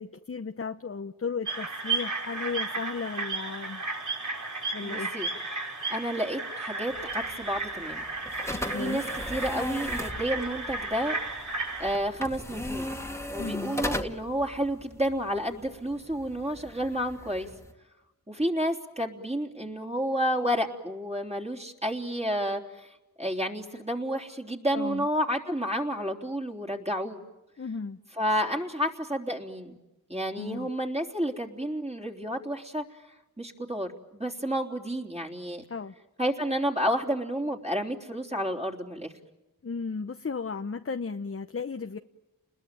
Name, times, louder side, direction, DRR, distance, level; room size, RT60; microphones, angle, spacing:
voice 1, 0.0-3.8 4.7-5.1 8.7-9.0 13.4-13.8 24.7-25.1 27.6-28.0 30.4-30.7 35.7-35.9 39.6-42.0, left 5 dB, 35° left, 7 dB, 1.0 m, -35 dB
sound 1, 1.5-11.9, right 3 dB, 50° right, 5.3 m, -34 dB
voice 2, 4.8-5.3 5.9-8.0 8.8-9.0 9.3-11.2 11.8-12.9 13.3-17.5 18.3-27.2 28.2-29.7 30.1-32.8 33.4-35.6 36.2-39.1, equal, 15° right, 1 dB, 3.6 m, -30 dB
sound 2, 6.9-17.7, left 1 dB, 5° left, 2.2 m, -38 dB
30.0 x 21.0 x 9.2 m, 1.0 s
cardioid pair, 55°, 37 cm